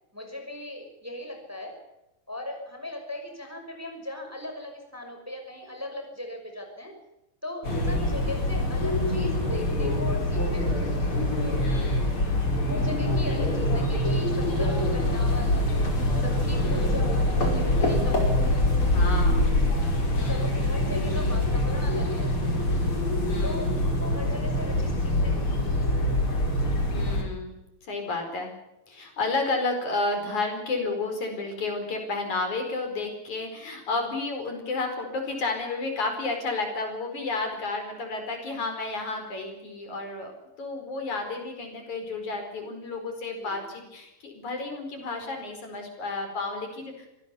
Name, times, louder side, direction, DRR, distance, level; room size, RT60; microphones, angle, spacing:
voice 1, 0.1-1.8 2.3-7.0 7.4-11.1 12.7-18.6 19.7-19.9 20.3-22.3 23.4-26.1 26.7-27.0 43.4-43.6, left 1 dB, 5° right, 4 dB, 5.5 m, -38 dB
voice 2, 7.6-7.9 11.6-12.2 13.2-13.6 16.5-17.1 18.9-19.5 20.1-20.6 21.0-21.5 23.3-23.8 26.9-27.5 27.8-28.5 28.9-40.3 40.6-47.1, left 3 dB, 55° left, 4 dB, 6.0 m, -32 dB
sound 1, 7.6-27.2, left 1 dB, 35° left, 5.7 m, -24 dB
25.0 x 19.0 x 6.9 m, 0.91 s
omnidirectional pair, 4.2 m